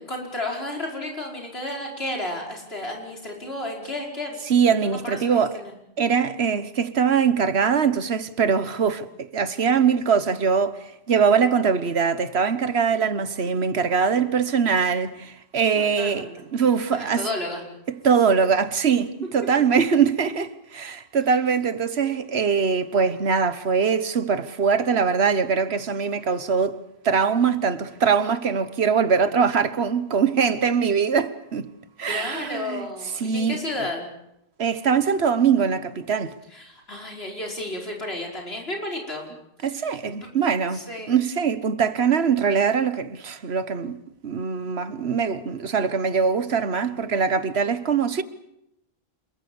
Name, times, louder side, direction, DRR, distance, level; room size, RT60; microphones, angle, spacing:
voice 1, 0.0-4.4 4.8-5.7 15.7-16.5 16.9-17.6 32.1-34.1 36.5-39.3 39.8-40.3 40.7-41.1, left 1 dB, 75° left, 5.5 m, -32 dB
voice 2, 4.5-5.6 6.0-17.2 17.9-26.8 27.0-31.7 32.0-32.9 33.2-33.6 34.6-36.3 39.6-40.8 41.1-48.2, right 6 dB, 80° right, 1.5 m, -22 dB
27.5 x 21.5 x 7.1 m
omnidirectional pair, 1.1 m